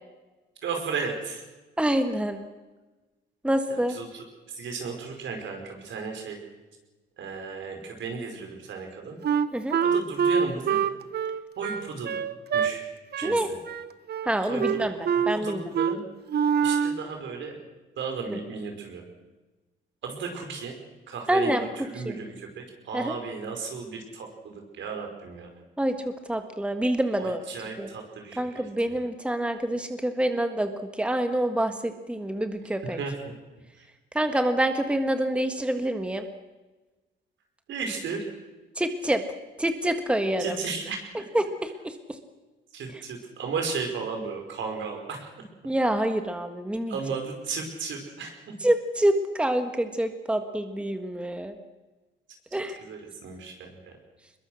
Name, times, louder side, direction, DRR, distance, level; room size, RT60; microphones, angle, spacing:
voice 1, 0.6-1.4 3.7-6.4 7.2-9.2 9.8-10.8 11.6-12.2 12.5-12.9 13.2-13.6 14.5-14.9 15.3-16.0 16.6-17.6 18.0-19.0 20.0-20.8 21.1-25.5 27.2-28.5 28.8-29.0 32.9-33.3 37.7-38.3 40.4-41.2 42.7-45.3 46.9-48.4 52.5-53.9, right 5 dB, 70° right, 3 dB, 5.2 m, -35 dB
voice 2, 1.8-2.4 3.4-4.0 9.5-9.8 13.2-13.5 14.2-15.7 21.3-21.6 22.0-22.2 22.9-23.2 25.8-27.4 27.8-27.9 28.4-33.0 34.1-36.3 38.8-39.2 39.6-40.6 41.3-42.2 45.6-47.0 48.6-51.6 52.5-52.8, right 1 dB, 5° right, 7 dB, 1.6 m, -26 dB
Wind instrument woodwind instrument, 9.2-12.7 13.1-13.4 13.6-14.3 14.6-15.4 15.7-16.0 16.3-17.0, right 7 dB, 55° right, 1.0 m, -25 dB
22.5 x 21.5 x 6.4 m, 1.2 s
cardioid pair, 90°, 20 cm